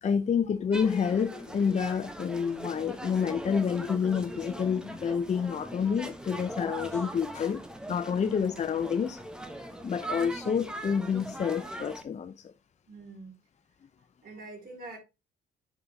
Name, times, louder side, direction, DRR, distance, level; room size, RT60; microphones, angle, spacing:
voice 1, 0.0-7.6 7.9-9.2 9.8-12.5, left 6 dB, 35° left, 0.6 m, -28 dB
sound 1, 0.7-12.0, right 1 dB, 5° right, 1.2 m, -40 dB
voice 2, 8.1-8.5 12.9-13.3 14.2-15.0, right 2 dB, 50° right, 5.0 m, -45 dB
8.9 x 4.0 x 4.1 m
cardioid pair, 90°, 20 cm